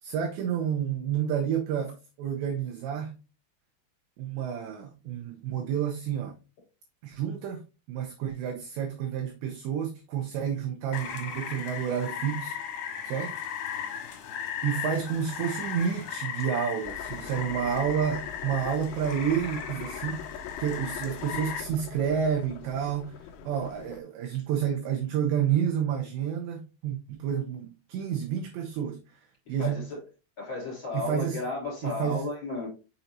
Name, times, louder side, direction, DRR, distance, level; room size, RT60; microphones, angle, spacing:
voice 1, 0.0-3.2 4.2-6.4 7.0-12.6 13.0-13.3 14.6-20.3 20.6-23.2 23.4-29.0 29.5-29.8 30.9-31.4 31.8-32.3, right 8 dB, 80° right, 2.5 m, -30 dB
Rain, 10.9-21.6, left 9 dB, 65° left, 3.1 m, -37 dB
sound 1, 16.8-24.0, left 7 dB, 85° left, 3.2 m, -43 dB
voice 2, 29.5-30.0 30.4-32.7, left 3 dB, 25° left, 3.7 m, -34 dB
6.8 x 5.9 x 2.6 m
omnidirectional pair, 5.9 m